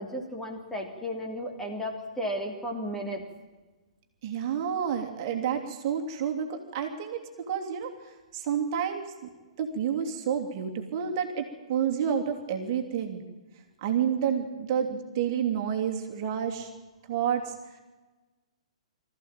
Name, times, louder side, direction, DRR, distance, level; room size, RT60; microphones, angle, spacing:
voice 1, 0.0-3.2, equal, 5° left, 1 dB, 3.2 m, -34 dB
voice 2, 4.2-9.1 9.6-13.2 13.8-16.7 17.1-17.5, right 8 dB, 40° right, 3 dB, 3.0 m, -29 dB
24.5 x 14.5 x 9.1 m, 1.2 s
figure-of-eight pair, 120°, 3 cm